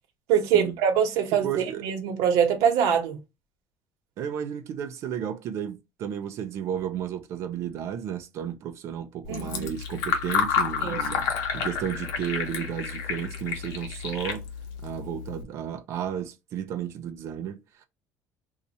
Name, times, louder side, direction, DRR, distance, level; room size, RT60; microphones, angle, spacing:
voice 1, 0.3-3.2 9.3-9.7 10.8-11.2, right 8 dB, 75° right, 1.1 m, -24 dB
voice 2, 1.3-1.9 4.2-11.2 11.5-14.5 14.8-17.8, right 9 dB, 50° right, 0.5 m, -33 dB
Fill (with liquid), 9.2-15.4, left 6 dB, 75° left, 1.0 m, -30 dB
2.7 x 2.4 x 4.1 m
cardioid pair, 160°, 6 cm